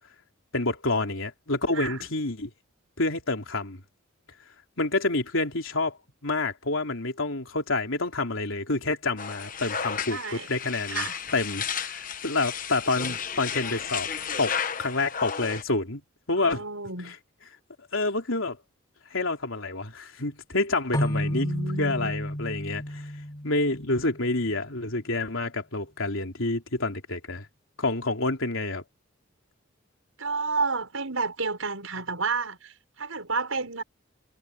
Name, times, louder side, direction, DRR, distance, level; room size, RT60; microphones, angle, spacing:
voice 1, 0.5-2.5 3.0-3.8 4.8-6.0 6.2-11.1 11.3-14.1 14.4-16.0 16.3-16.6 17.9-18.6 19.1-21.5 21.8-23.1 23.4-27.5 27.8-28.8, left 2 dB, 75° left, 3.4 m, -28 dB
voice 2, 1.7-2.1 10.1-10.5 10.9-11.2 16.4-17.2 21.0-22.1 30.2-33.8, right 4 dB, 80° right, 6.2 m, -31 dB
sound 1, 9.2-15.6, left 7 dB, 40° left, 1.1 m, -33 dB
sound 2, 20.9-24.5, equal, 20° left, 2.2 m, -31 dB
head